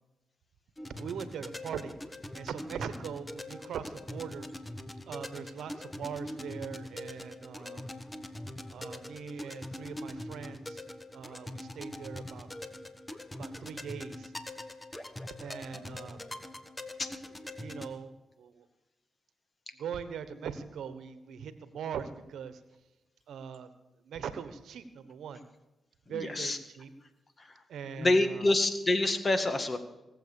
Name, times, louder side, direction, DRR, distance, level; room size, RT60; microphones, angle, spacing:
sound 1, 0.8-17.9, left 1 dB, 20° left, 1.5 m, -43 dB
voice 1, 1.0-2.0 2.3-4.5 5.1-7.9 8.7-10.8 11.1-12.5 13.3-14.3 15.4-16.2 17.5-18.6 19.8-22.6 23.3-23.7 24.0-25.4 26.1-26.9 27.7-28.5, right 7 dB, 80° right, 12 dB, 1.1 m, -41 dB
voice 2, 26.1-26.6 27.4-27.5 28.0-29.8, left 2 dB, 40° left, 9 dB, 1.9 m, -27 dB
18.5 x 7.7 x 7.0 m, 1.0 s
supercardioid pair, 50°, 0 cm